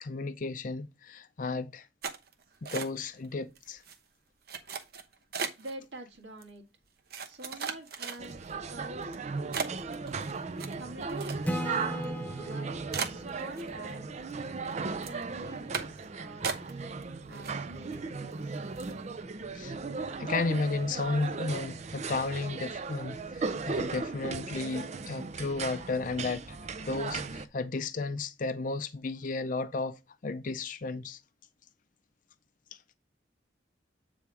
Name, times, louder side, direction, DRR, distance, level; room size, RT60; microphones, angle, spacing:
voice 1, 0.0-1.9 2.6-3.8 19.5-19.7 20.2-26.6 26.9-31.2, left 3 dB, 45° left, 0.5 m, -33 dB
sound 1, 2.0-3.3 3.6-4.0 4.5-5.7 6.4-6.5 7.1-8.5 9.0-9.2 9.5-11.7 12.0-12.1 12.5-12.6 12.9-14.0 14.3-14.7 15.0-15.2 15.7-16.1 16.4-17.0 17.3-18.0 18.3-18.4 18.8-19.0, right 6 dB, 60° right, 0.9 m, -37 dB
voice 2, 5.6-6.7 7.3-9.3 9.6-9.7 10.8-14.1 14.7-18.6, right 2 dB, 80° right, 1.9 m, -47 dB
sound 2, 8.2-27.5, right 4 dB, 40° right, 0.5 m, -37 dB
Acoustic guitar / Strum, 11.5-15.0, equal, 10° left, 0.7 m, -38 dB
8.4 x 3.5 x 4.7 m
head